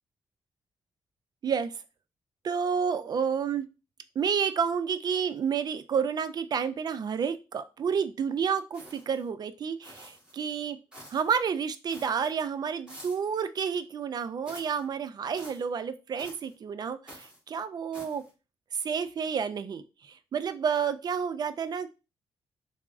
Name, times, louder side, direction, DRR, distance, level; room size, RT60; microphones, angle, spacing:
voice 1, 1.4-1.8 2.4-3.7 4.2-10.8 11.1-18.2 18.7-21.9, right 6 dB, 50° right, 12 dB, 0.3 m, -30 dB
sound 1, 8.7-9.3 9.8-10.4 10.9-11.3 11.9-12.3 12.9-13.3 14.5-14.8 15.4-15.7 16.2-16.5 17.1-17.4 17.9-18.3, equal, 10° right, 1.4 m, -49 dB
3.5 x 2.0 x 2.4 m, 0.29 s
cardioid pair, 85°, 9 cm